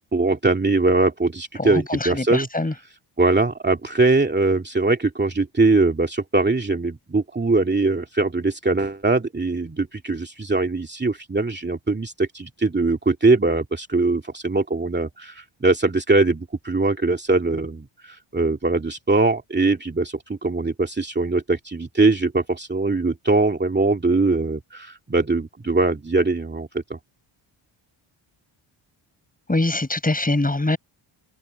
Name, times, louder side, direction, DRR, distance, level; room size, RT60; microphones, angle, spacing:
voice 1, 0.1-2.5 3.2-27.0, right 3 dB, 20° right, 2.4 m, -21 dB
voice 2, 1.6-2.7 29.5-30.8, left 2 dB, 15° left, 6.5 m, -23 dB
cardioid pair, 85°, 49 cm